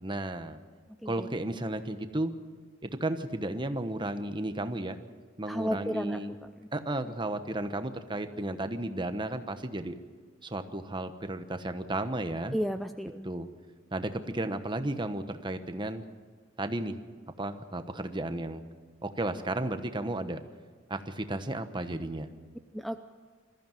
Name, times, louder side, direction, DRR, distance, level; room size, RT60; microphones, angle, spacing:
voice 1, 0.0-0.6 1.0-2.3 2.8-5.0 5.4-6.3 6.7-10.0 10.4-12.6 13.2-13.5 13.9-16.0 16.6-17.0 17.4-18.6 19.0-20.4 20.9-22.3, right 1 dB, 25° right, 9 dB, 1.2 m, -33 dB
voice 2, 5.5-6.2 12.5-13.3 22.7-23.0, equal, ahead, 8 dB, 0.5 m, -32 dB
22.0 x 14.5 x 9.2 m, 1.5 s
head